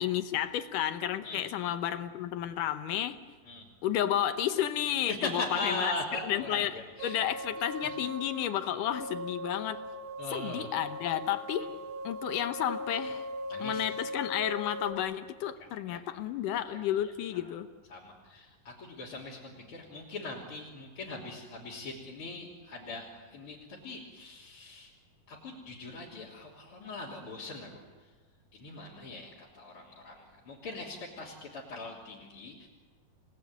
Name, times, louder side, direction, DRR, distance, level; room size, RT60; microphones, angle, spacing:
voice 1, 0.0-3.2 3.8-5.9 6.2-9.8 10.3-11.7 12.0-13.3 13.6-17.7, left 11 dB, 70° left, 9 dB, 2.2 m, -32 dB
voice 2, 5.1-7.2 7.8-7.9 10.2-10.7 11.6-11.7 13.5-13.8 15.9-16.0 16.7-16.8 17.3-17.4 17.9-24.9 25.3-27.8 28.5-32.7, left 2 dB, 35° left, -5 dB, 3.7 m, -40 dB
sound 1, 7.0-14.9, equal, 75° right, 3.2 m, -40 dB
29.0 x 19.0 x 9.4 m, 1.4 s
omnidirectional pair, 4.4 m